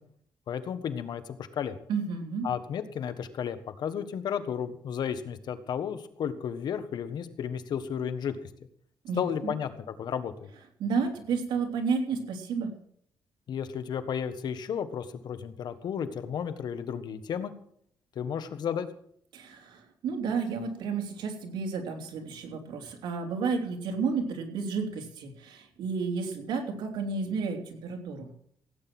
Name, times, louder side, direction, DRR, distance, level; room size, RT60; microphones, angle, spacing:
voice 1, 0.5-1.7 2.4-8.4 9.2-10.5 13.5-17.5 18.1-18.9, left 8 dB, 65° left, 10 dB, 1.5 m, -33 dB
voice 2, 1.9-2.5 9.0-9.5 10.8-12.7 19.3-28.3, right 5 dB, 85° right, 3 dB, 3.1 m, -31 dB
16.5 x 9.1 x 6.1 m, 0.65 s
cardioid pair, 120°, 8 cm